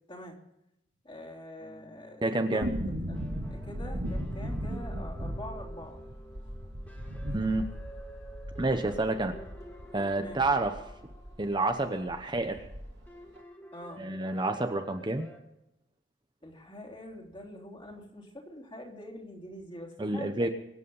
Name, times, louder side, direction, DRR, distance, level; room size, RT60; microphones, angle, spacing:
voice 1, 1.0-2.8 3.1-6.0 6.4-6.5 10.2-10.4 13.7-14.0 16.4-20.5, left 1 dB, 25° left, 1 dB, 3.5 m, -45 dB
sound 1, 1.6-15.4, equal, 10° left, 2.5 m, -51 dB
voice 2, 2.2-2.7 7.3-7.7 8.6-9.3 9.9-10.7 11.4-12.6 14.0-15.3 20.0-20.5, right 2 dB, 25° right, 5 dB, 1.0 m, -29 dB
sound 2, 2.6-11.4 11.7-11.8 12.1-13.1 13.4-13.5, equal, 60° right, 3.0 m, -37 dB
24.5 x 8.5 x 5.6 m, 0.85 s
head